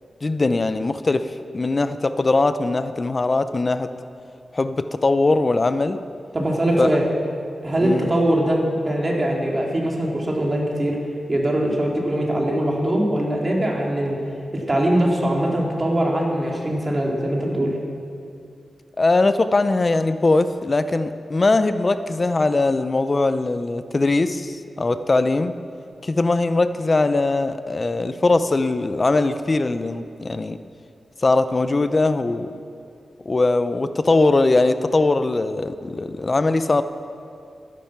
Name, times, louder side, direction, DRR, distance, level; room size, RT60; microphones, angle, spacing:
voice 1, 0.2-3.9 4.5-6.0 6.8-6.9 7.8-8.1 19.0-25.5 26.0-30.6 31.2-32.5 33.3-36.8, left 3 dB, 40° left, 11 dB, 0.6 m, -20 dB
voice 2, 6.3-7.1 7.6-11.0 11.3-14.2 14.5-17.8, right 1 dB, 30° right, -1 dB, 2.4 m, -22 dB
12.5 x 10.0 x 6.0 m, 2.5 s
cardioid pair, 75°, 0 cm